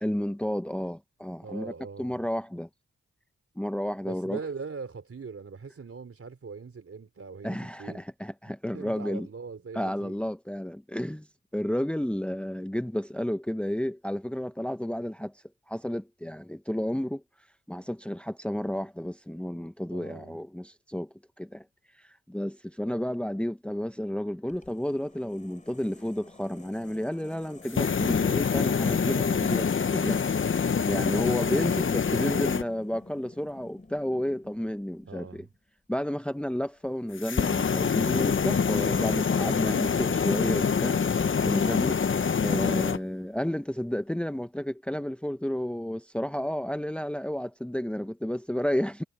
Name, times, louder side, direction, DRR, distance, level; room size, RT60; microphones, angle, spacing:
voice 1, 0.0-1.7 2.0-2.7 3.6-4.4 7.4-9.3 9.7-11.3 11.5-17.2 17.7-21.7 21.9-30.3 30.8-35.4 35.9-49.0, equal, 5° left, 1.1 m, -32 dB
voice 2, 1.4-2.2 4.0-8.0 8.7-10.2 19.9-20.4 30.9-31.4 31.8-32.0 35.0-35.5, right 5 dB, 50° right, 4.0 m, -41 dB
sound 1, 24.5-35.6, left 2 dB, 25° left, 5.7 m, -50 dB
sound 2, 27.6-32.6 37.2-43.0, left 6 dB, 45° left, 1.1 m, -25 dB
supercardioid pair, 45°, 29 cm